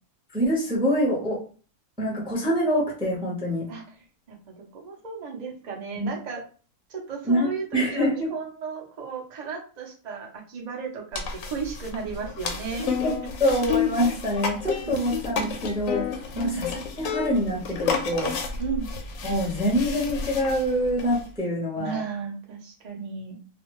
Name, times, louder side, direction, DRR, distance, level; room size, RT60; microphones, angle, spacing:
voice 1, 0.3-1.4 2.0-3.7 6.0-6.1 7.3-8.3 13.0-13.1 13.4-18.3 19.2-22.0, equal, 5° right, -4 dB, 0.6 m, -25 dB
voice 2, 4.3-6.4 6.9-12.9 13.2-13.3 14.7-15.2 16.3-16.6 18.6-18.9 21.8-23.4, right 5 dB, 50° right, -1 dB, 0.5 m, -34 dB
sound 1, 11.1-21.3, left 6 dB, 70° left, 0.9 m, -31 dB
2.5 x 2.3 x 2.9 m, 0.38 s
omnidirectional pair, 1.7 m